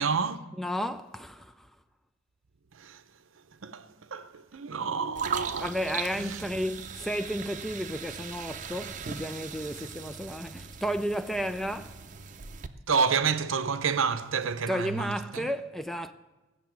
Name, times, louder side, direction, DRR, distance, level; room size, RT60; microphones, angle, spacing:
voice 1, 0.0-0.4 2.7-3.0 3.6-5.7 6.2-6.4 12.9-15.5, right 5 dB, 75° right, 0.7 m, -29 dB
voice 2, 0.6-1.7 5.6-12.0 14.7-16.1, equal, ahead, 0.3 m, -33 dB
sound 1, 5.2-12.7, right 6 dB, 40° right, 0.6 m, -39 dB
15.0 x 6.8 x 9.0 m
head